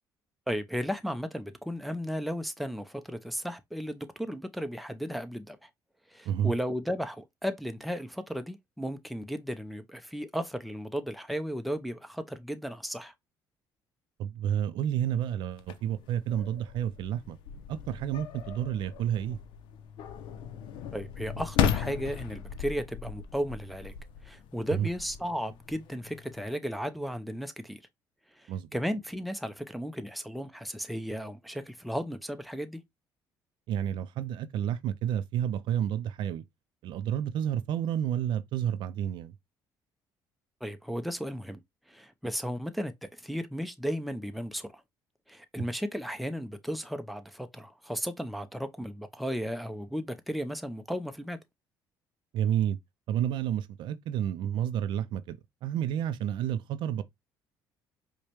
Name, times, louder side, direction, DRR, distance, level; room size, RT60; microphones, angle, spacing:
voice 1, 0.5-5.7 6.1-13.1 20.9-23.9 24.2-27.8 28.4-32.8 40.6-41.6 41.9-42.9 43.2-44.8 45.3-51.4, equal, ahead, 0.5 m, -35 dB
voice 2, 14.2-17.4 17.7-19.4 24.7-24.9 28.5-28.7 33.7-36.4 36.8-39.3 52.3-52.8 53.1-57.0, right 10 dB, 70° right, 0.4 m, -30 dB
sound 1, 15.5-26.5, left 8 dB, 75° left, 0.5 m, -36 dB
4.8 x 2.2 x 2.9 m
cardioid pair, 85°, 8 cm